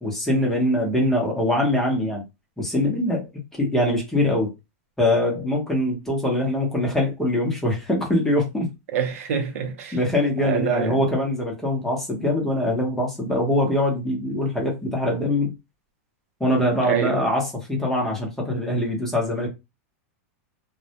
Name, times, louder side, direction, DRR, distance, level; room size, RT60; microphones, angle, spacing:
voice 1, 0.0-2.2 2.6-3.3 3.6-4.5 5.0-8.7 9.9-15.5 16.4-19.5, left 1 dB, 5° left, 0.8 m, -23 dB
voice 2, 8.9-10.0 10.4-11.0 16.8-17.3, right 8 dB, 70° right, 0.6 m, -26 dB
2.1 x 2.1 x 2.8 m
supercardioid pair, 150°, 8 cm